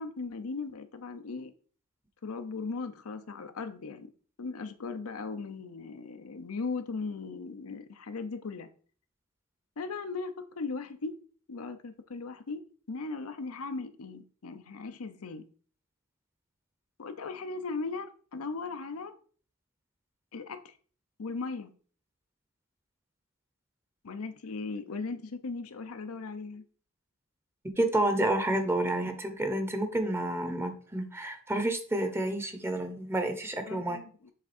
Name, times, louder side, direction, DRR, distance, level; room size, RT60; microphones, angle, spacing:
voice 1, 0.0-1.5 2.2-4.1 4.4-8.7 9.8-11.2 11.5-12.6 12.9-15.4 17.0-19.1 20.3-20.7 21.2-21.7 24.0-26.6 33.7-34.3, left 4 dB, 85° left, 0.7 m, -38 dB
voice 2, 27.8-34.0, right 1 dB, 10° right, 0.8 m, -29 dB
7.4 x 3.5 x 4.3 m
head